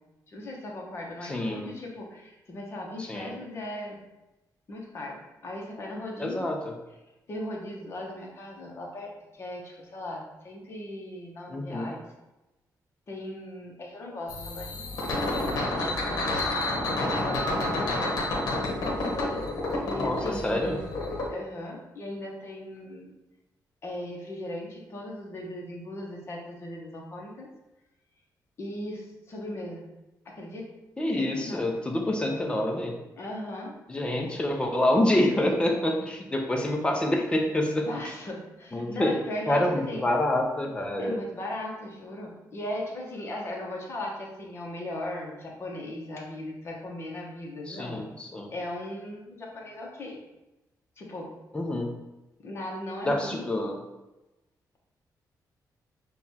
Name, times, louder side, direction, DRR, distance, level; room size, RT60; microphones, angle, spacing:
voice 1, 0.3-4.0 4.7-6.5 7.3-12.0 13.1-18.2 18.9-19.4 19.8-21.0 21.3-23.1 23.8-27.5 28.6-29.9 30.2-30.7 31.2-31.8 33.2-33.8 34.1-34.4 37.9-40.0 41.0-48.1 48.5-50.2 51.0-51.3 52.4-53.5, left 1 dB, 35° left, -2 dB, 0.9 m, -38 dB
voice 2, 1.2-1.7 3.0-3.3 6.2-6.7 11.5-11.9 19.9-20.8 31.0-32.9 33.9-37.9 38.7-39.1 39.5-41.2 47.7-48.5 51.5-51.9 53.0-53.8, left 1 dB, 15° left, 2 dB, 0.5 m, -27 dB
sound 1, 14.3-21.3, left 2 dB, 65° left, 1.0 m, -29 dB
6.7 x 2.3 x 2.7 m, 1.0 s
wide cardioid pair, 160°, 7 cm